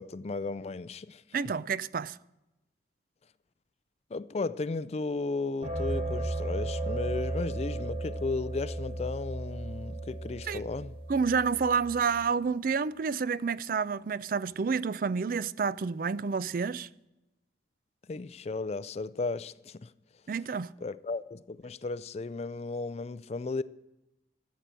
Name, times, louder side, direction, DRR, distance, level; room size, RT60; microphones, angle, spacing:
voice 1, 0.0-1.2 4.1-10.9 18.1-19.9 20.8-23.6, left 3 dB, 35° left, 0.4 m, -35 dB
voice 2, 1.3-2.2 10.5-10.6 11.1-16.9 20.3-20.7, right 5 dB, 50° right, 0.4 m, -29 dB
sound 1, 5.6-12.1, right 2 dB, 30° right, 4.3 m, -35 dB
14.5 x 8.3 x 7.5 m
head